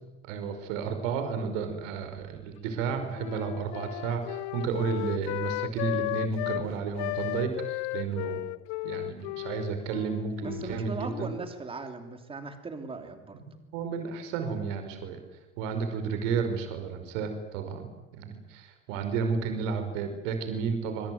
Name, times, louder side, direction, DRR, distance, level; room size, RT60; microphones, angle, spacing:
voice 1, 0.3-8.4 8.8-11.3 13.3-13.4 13.7-15.2 15.6-21.1, right 5 dB, 70° right, 7 dB, 5.3 m, -32 dB
Wind instrument woodwind instrument, 2.7-6.7 7.0-11.5, left 22 dB, 60° left, 0.9 m, -35 dB
voice 2, 10.4-13.4, right 3 dB, 15° right, 7 dB, 3.1 m, -39 dB
26.0 x 22.0 x 9.4 m, 1.0 s
supercardioid pair, 155°, 40 cm